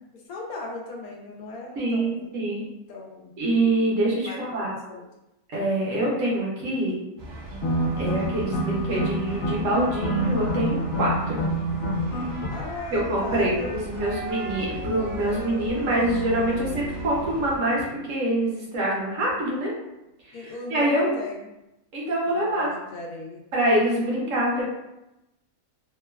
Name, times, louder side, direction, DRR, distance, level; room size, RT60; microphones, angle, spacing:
voice 1, 0.1-2.3 2.9-3.3 4.3-5.1 12.5-13.7 20.3-21.5 22.3-23.4, left 2 dB, 75° left, -1 dB, 1.0 m, -37 dB
voice 2, 1.8-2.6 3.4-4.7 5.5-7.0 8.0-11.4 12.9-19.7 20.2-21.1 21.9-22.7 23.5-24.6, right 1 dB, 65° right, -4 dB, 1.0 m, -25 dB
sound 1, 7.2-17.6, right 1 dB, 85° right, 1.1 m, -39 dB
sound 2, 7.5-12.5, right 1 dB, 55° left, 0.9 m, -27 dB
sound 3, 13.9-19.1, right 2 dB, 5° right, 0.7 m, -36 dB
3.0 x 2.2 x 2.2 m, 0.92 s
omnidirectional pair, 1.6 m